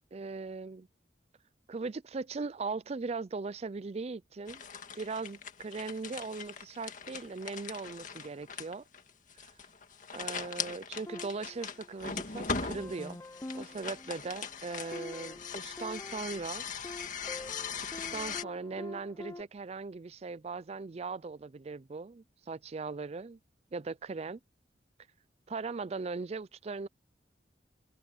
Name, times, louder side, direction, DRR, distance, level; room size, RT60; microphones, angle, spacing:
voice 1, 0.1-0.9 1.7-4.6 5.0-8.8 9.4-9.5 10.1-13.2 13.5-16.6 17.8-23.4 23.7-24.4 25.5-26.9, right 4 dB, 35° right, 0.4 m, -39 dB
sound 1, 4.5-18.4, left 6 dB, 45° left, 1.9 m, -40 dB
sound 2, 11.1-12.3 12.8-19.4, left 2 dB, 20° left, 0.6 m, -47 dB
head